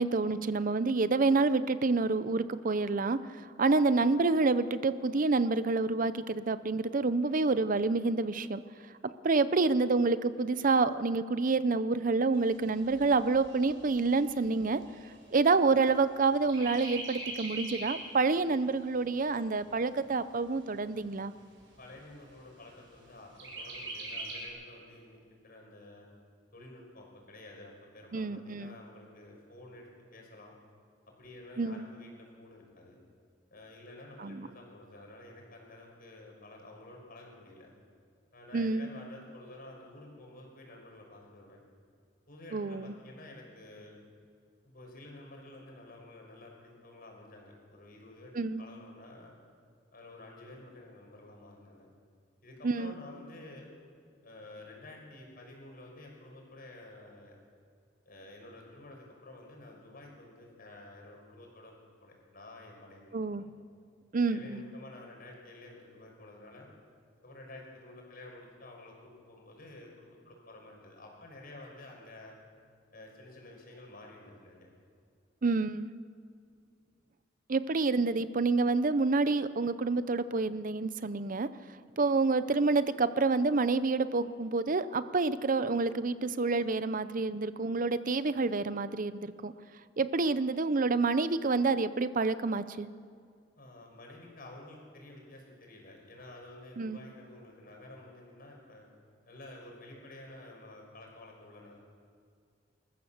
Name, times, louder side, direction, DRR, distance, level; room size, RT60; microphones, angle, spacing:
voice 1, 0.0-8.6 9.0-14.8 15.3-21.3 28.1-28.7 31.6-31.9 34.2-34.5 38.5-38.9 42.5-42.9 48.3-48.6 52.6-52.9 63.1-63.4 64.1-64.6 75.4-75.9 77.5-81.5 82.0-89.5 90.0-92.9 96.8-97.0, right 3 dB, 45° right, 14 dB, 0.6 m, -28 dB
Chirp tweet, 12.3-16.1 16.5-18.1 18.6-18.7 19.0-20.0 20.6-20.7 21.1-21.2 21.6-22.1 23.4-24.5, right 2 dB, 75° right, 6.0 m, -42 dB
voice 2, 21.8-26.1 26.5-30.5 31.2-33.0 33.5-37.7 38.3-41.6 42.3-44.0 44.6-49.3 49.9-51.9 52.4-53.7 54.2-57.4 58.1-63.5 64.3-66.7 67.2-72.4 72.9-74.7 93.6-98.9 99.3-101.8, left 2 dB, 55° left, 0 dB, 5.7 m, -51 dB
26.0 x 14.5 x 7.2 m, 2.2 s
head